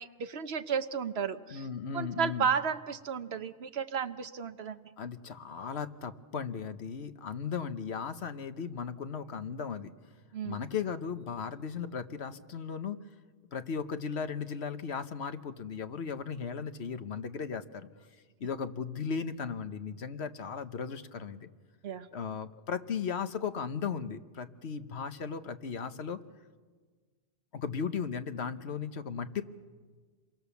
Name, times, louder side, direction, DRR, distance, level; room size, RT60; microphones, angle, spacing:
voice 1, 0.0-1.7 1.9-4.8 10.3-10.6 21.8-22.1, right 6 dB, 70° right, 10 dB, 1.2 m, -33 dB
voice 2, 1.5-2.5 5.0-9.9 10.4-13.0 13.5-17.9 18.4-21.5 22.1-26.2 27.5-29.4, left 6 dB, 75° left, 10 dB, 1.3 m, -36 dB
27.0 x 22.5 x 7.1 m, 1.5 s
omnidirectional pair, 1.1 m